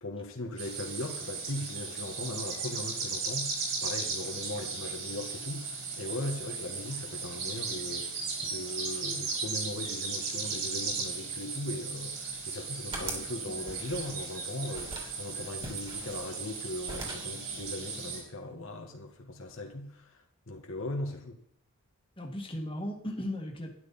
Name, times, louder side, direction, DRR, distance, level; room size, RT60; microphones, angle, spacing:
voice 1, 0.0-21.4, left 1 dB, 60° left, 1.5 m, -39 dB
sound 1, 0.6-18.2, right 4 dB, 45° right, 5.0 m, -36 dB
sound 2, 12.3-13.3 13.7-14.4 14.7-15.1 15.6-16.6 16.9-17.4, right 2 dB, 25° right, 3.0 m, -41 dB
voice 2, 13.0-13.6 22.2-23.7, left 1 dB, 25° left, 1.9 m, -37 dB
12.5 x 10.5 x 4.2 m
head